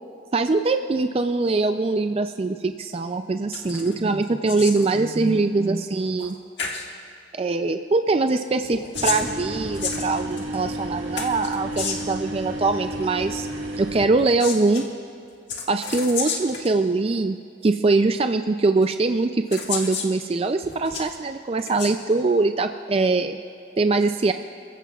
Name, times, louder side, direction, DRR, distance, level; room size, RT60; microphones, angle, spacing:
voice 1, 0.3-6.4 7.3-13.5 13.8-14.8 15.7-17.4 17.6-23.4 23.8-24.3, right 3 dB, 30° right, 7 dB, 0.3 m, -22 dB
sound 1, 3.5-3.9 4.2-4.9 6.2-6.3 6.6-6.9 8.6-10.6 11.2-12.2 14.1-14.8 15.5-16.7 17.6-17.7 18.8-18.9 19.5-20.1 20.6-21.1 21.6-21.9, left 5 dB, 65° left, 1.7 m, -31 dB
sound 2, 8.9-14.0, right 1 dB, 80° right, 1.9 m, -32 dB
28.5 x 15.0 x 2.4 m, 2.5 s
head